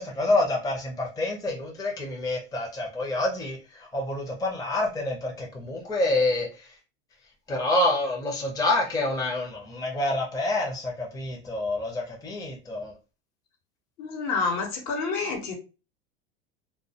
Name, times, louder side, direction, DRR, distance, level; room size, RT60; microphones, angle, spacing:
voice 1, 0.0-6.7 7.5-12.9, left 2 dB, 10° left, 0 dB, 0.6 m, -27 dB
voice 2, 14.0-15.5, left 4 dB, 60° left, 2 dB, 1.0 m, -28 dB
2.3 x 2.2 x 2.7 m, 0.32 s
hypercardioid pair, 100°, 31 cm